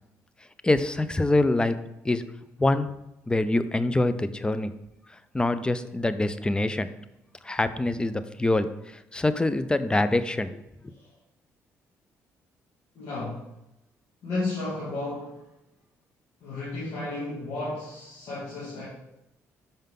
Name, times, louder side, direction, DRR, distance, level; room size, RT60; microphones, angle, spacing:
voice 1, 0.6-1.8 2.0-2.2 2.6-2.9 3.3-4.7 5.3-6.9 7.4-8.7 9.1-10.5, left 2 dB, 15° left, 12 dB, 0.5 m, -24 dB
voice 2, 12.9-13.4 14.2-15.4 16.4-18.9, left 2 dB, 75° left, -8 dB, 2.4 m, -33 dB
5.7 x 5.3 x 3.7 m, 0.91 s
supercardioid pair, 60°, 6 cm